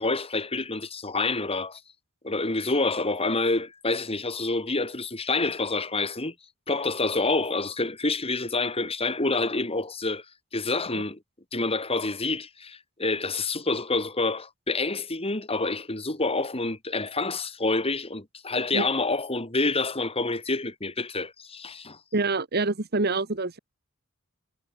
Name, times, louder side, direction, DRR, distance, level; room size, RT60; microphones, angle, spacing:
voice 1, 0.0-1.8 2.2-6.3 6.7-10.2 10.5-11.2 11.5-22.0, left 3 dB, 30° left, 4.3 m, -27 dB
voice 2, 22.1-23.6, right 3 dB, 50° right, 1.7 m, -26 dB
head